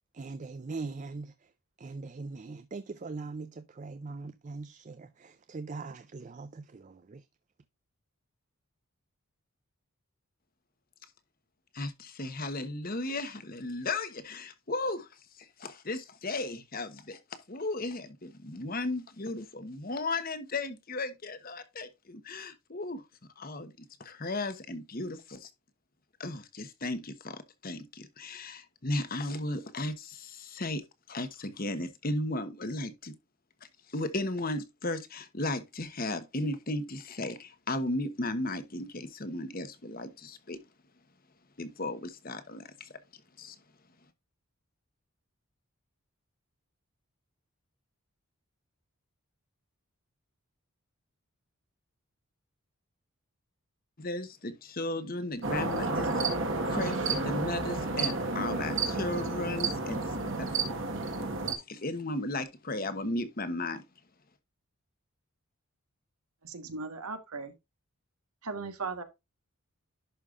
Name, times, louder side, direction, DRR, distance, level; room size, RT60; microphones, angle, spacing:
voice 1, 0.1-1.3 1.8-7.2, right 3 dB, 35° right, 0.4 m, -41 dB
voice 2, 11.7-15.1 15.4-23.0 23.4-23.7 24.0-25.5 26.2-33.1 33.9-40.6 41.6-42.9 43.4-43.6 54.0-56.1 56.7-60.5 61.7-63.8, left 2 dB, 40° left, 1.1 m, -35 dB
sound 1, 55.4-61.5, right 3 dB, 60° right, 1.5 m, -31 dB
voice 3, 66.4-67.5 68.4-69.0, right 4 dB, 85° right, 1.5 m, -37 dB
11.0 x 5.4 x 2.5 m
head